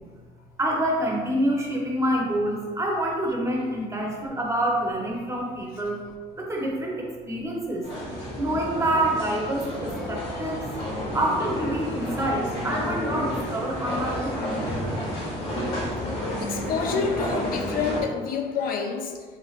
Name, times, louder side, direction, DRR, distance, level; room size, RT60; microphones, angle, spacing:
voice 1, 0.6-6.0 6.5-6.9 7.3-7.8 8.4-9.6 10.1-10.6 11.1-14.3, right 1 dB, 15° right, -2 dB, 0.7 m, -26 dB
sound 1, 7.8-18.0, equal, 90° left, 1.2 m, -31 dB
voice 2, 16.4-19.2, left 5 dB, 60° left, 4 dB, 0.4 m, -28 dB
3.4 x 3.2 x 2.4 m, 1.5 s
cardioid pair, 110°, 17 cm